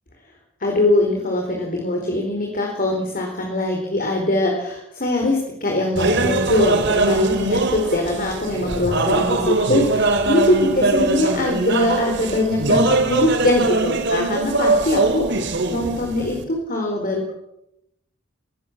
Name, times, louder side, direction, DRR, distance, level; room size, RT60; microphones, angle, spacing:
voice 1, 0.6-17.3, left 1 dB, 40° left, 1 dB, 4.3 m, -22 dB
sound 1, 6.0-16.4, right 2 dB, 55° right, 3.1 m, -21 dB
23.5 x 18.0 x 7.4 m, 0.80 s
head